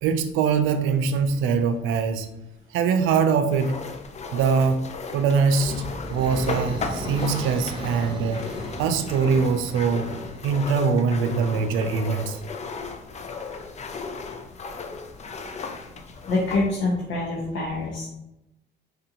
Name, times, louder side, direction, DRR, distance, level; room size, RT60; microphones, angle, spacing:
voice 1, 0.0-2.3 2.7-3.7 4.3-4.8 5.1-5.7 6.1-8.4 8.8-10.1 10.4-12.4, right 5 dB, 90° right, 8 dB, 0.4 m, -22 dB
sound 1, 3.5-16.7, left 4 dB, 35° left, 0.4 m, -35 dB
sound 2, 5.3-11.2, right 1 dB, 25° right, 0.7 m, -36 dB
voice 2, 16.3-18.1, left 2 dB, 70° left, -5 dB, 0.9 m, -26 dB
3.9 x 2.5 x 2.9 m, 0.90 s
cardioid pair, 90°, 20 cm